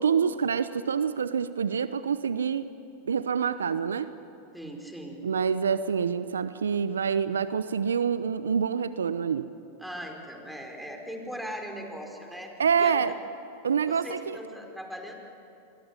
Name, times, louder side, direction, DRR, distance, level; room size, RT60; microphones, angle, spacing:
voice 1, 0.0-2.7 3.0-4.1 5.2-9.5 12.6-13.1 13.6-14.4, right 6 dB, 80° right, 14 dB, 0.8 m, -26 dB
voice 2, 4.5-5.2 9.8-12.5 12.8-13.1 13.9-15.1, equal, ahead, 2 dB, 4.8 m, -39 dB
29.0 x 22.0 x 9.0 m, 2.7 s
hypercardioid pair, 95°, 0 cm